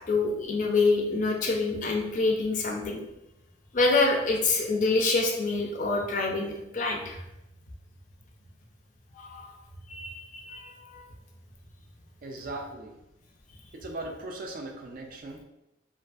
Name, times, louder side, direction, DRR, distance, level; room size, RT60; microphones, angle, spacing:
voice 1, 0.1-3.0 3.7-7.2 9.1-9.5 9.9-11.0, left 3 dB, 40° left, 1 dB, 0.4 m, -26 dB
voice 2, 12.2-12.9 13.7-15.4, right 2 dB, 45° right, 2 dB, 0.3 m, -38 dB
2.5 x 2.3 x 2.4 m, 0.89 s
head